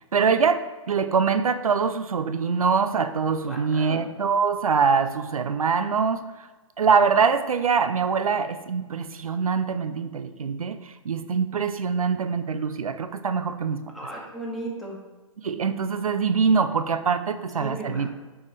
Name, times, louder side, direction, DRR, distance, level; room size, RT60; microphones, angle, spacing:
voice 1, 0.1-0.6 0.9-6.5 6.8-13.8 15.4-18.1, right 5 dB, 90° right, 10 dB, 0.5 m, -24 dB
voice 2, 3.5-4.0 13.9-15.0 17.6-18.1, right 1 dB, ahead, -4 dB, 1.8 m, -35 dB
8.5 x 5.6 x 3.3 m, 1.2 s
hypercardioid pair, 125°, 18 cm